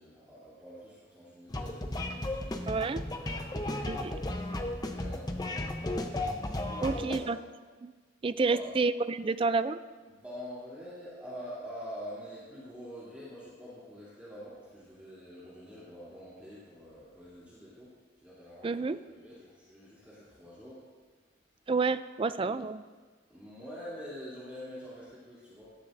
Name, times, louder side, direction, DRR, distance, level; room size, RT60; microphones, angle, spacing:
voice 1, 0.0-2.7 3.2-6.1 6.6-7.3 8.3-8.8 10.1-20.8 22.4-22.7 23.3-25.7, equal, 5° right, -11 dB, 3.1 m, -46 dB
sound 1, 1.5-7.2, left 1 dB, 20° left, 0.8 m, -34 dB
voice 2, 2.7-3.0 3.9-4.1 6.8-7.4 7.8-7.9 8.2-9.8 18.6-19.0 21.7-22.8, right 4 dB, 25° right, 13 dB, 0.3 m, -29 dB
16.5 x 13.5 x 2.6 m, 1.4 s
head